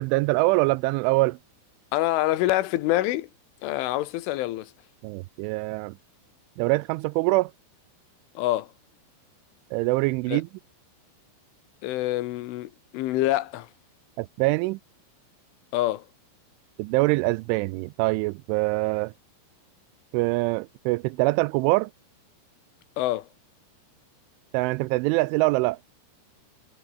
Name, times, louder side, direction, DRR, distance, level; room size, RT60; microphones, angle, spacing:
voice 1, 0.0-1.4 5.0-6.0 6.6-7.5 9.7-10.5 14.2-14.8 16.8-19.1 20.1-21.9 24.5-25.8, right 23 dB, 85° right, 2.9 m, -24 dB
voice 2, 1.9-3.3 3.6-4.7 8.4-8.7 10.3-10.4 11.8-13.7 15.7-16.1 23.0-23.3, left 16 dB, 80° left, 3.6 m, -26 dB
omnidirectional pair, 5.7 m